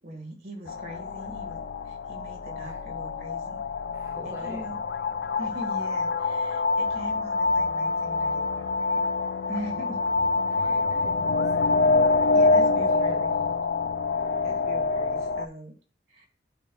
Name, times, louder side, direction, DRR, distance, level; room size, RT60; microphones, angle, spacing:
voice 1, 0.0-3.6 4.2-4.8 5.4-9.0 9.5-10.0 10.6-10.8 12.3-13.4 14.4-15.8 16.1-16.3, right 1 dB, 55° right, 1 dB, 2.1 m, -41 dB
sound 1, 0.7-15.5, left 3 dB, 60° left, 0.3 m, -26 dB
voice 2, 3.9-4.7 10.5-13.6, right 1 dB, 15° right, -1 dB, 1.1 m, -46 dB
10.0 x 4.4 x 2.4 m, 0.39 s
head